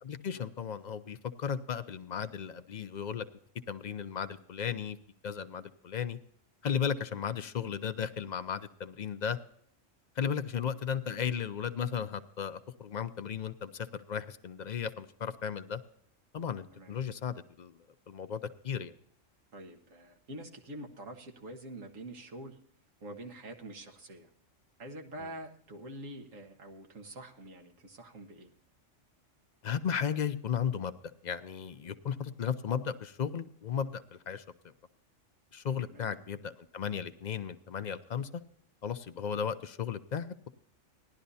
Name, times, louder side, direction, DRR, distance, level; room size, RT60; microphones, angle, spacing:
voice 1, 0.0-3.2 3.7-5.0 5.2-6.2 6.6-9.4 10.2-15.8 16.3-17.8 18.1-19.0 25.2-25.3 29.6-30.9 31.2-34.4 35.5-38.4 38.8-40.5, left 7 dB, 45° left, 11 dB, 0.6 m, -35 dB
voice 2, 19.5-22.6 23.0-24.3 24.8-28.5 35.9-36.2, right 1 dB, 90° right, 3 dB, 1.9 m, -46 dB
17.5 x 11.5 x 2.7 m, 0.65 s
omnidirectional pair, 1.3 m